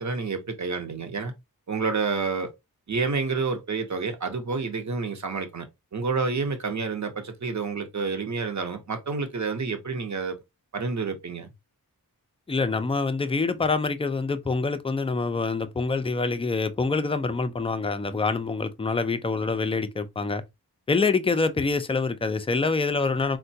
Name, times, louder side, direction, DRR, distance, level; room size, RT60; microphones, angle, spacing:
voice 1, 0.0-1.3 1.7-2.5 2.9-5.7 5.9-10.4 10.7-11.5, right 4 dB, 45° right, 0.8 m, -29 dB
voice 2, 12.5-20.4 20.9-23.4, left 4 dB, 15° left, 0.4 m, -26 dB
3.6 x 2.2 x 2.6 m
cardioid pair, 55°, 39 cm